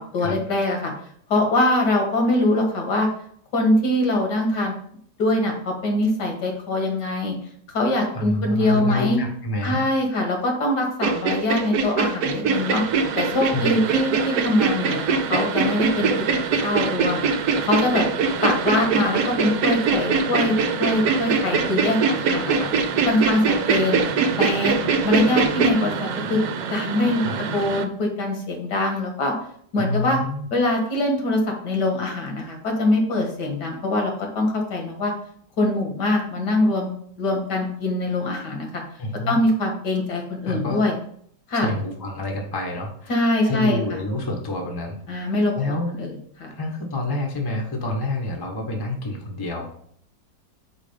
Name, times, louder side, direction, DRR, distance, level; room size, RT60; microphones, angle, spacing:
voice 1, 0.1-0.9 1.3-3.1 3.5-4.7 5.2-7.3 7.7-9.2 9.6-12.8 13.2-16.1 16.5-17.2 17.6-18.0 18.4-22.7 23.1-24.0 24.4-24.8 25.0-26.4 26.7-27.2 27.5-29.3 29.7-30.2 30.5-35.1 35.6-36.9 37.2-38.8 39.3-40.9 41.5-41.7 43.1-44.0 45.1-46.1 46.4-46.5, left 1 dB, 70° left, 2 dB, 2.0 m, -23 dB
voice 2, 8.1-9.8 13.5-13.6 27.2-27.4 29.8-30.5 39.0-39.4 40.5-40.8 41.5-43.1 43.4-45.9 46.5-49.7, left 1 dB, 15° left, 1 dB, 0.8 m, -28 dB
sound 1, 11.0-25.7, right 5 dB, 65° right, 1.1 m, -22 dB
sound 2, 12.5-27.9, right 6 dB, 90° right, 1.3 m, -31 dB
4.9 x 4.8 x 5.1 m, 0.63 s
omnidirectional pair, 1.9 m